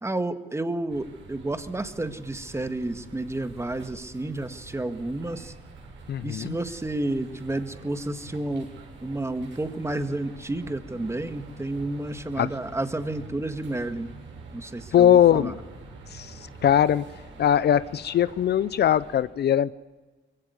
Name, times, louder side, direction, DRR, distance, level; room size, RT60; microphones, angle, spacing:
voice 1, 0.0-5.5 6.2-8.7 9.0-14.1 14.5-15.6, right 2 dB, 15° right, 10 dB, 1.7 m, -31 dB
sound 1, 0.9-19.2, right 3 dB, 70° right, 7.0 m, -46 dB
voice 2, 6.1-6.6 12.4-12.5 14.9-15.5 16.1-16.3 16.6-17.1 17.4-19.7, left 10 dB, 55° left, 17 dB, 0.6 m, -20 dB
22.0 x 16.0 x 9.7 m, 1.3 s
cardioid pair, 90°, 20 cm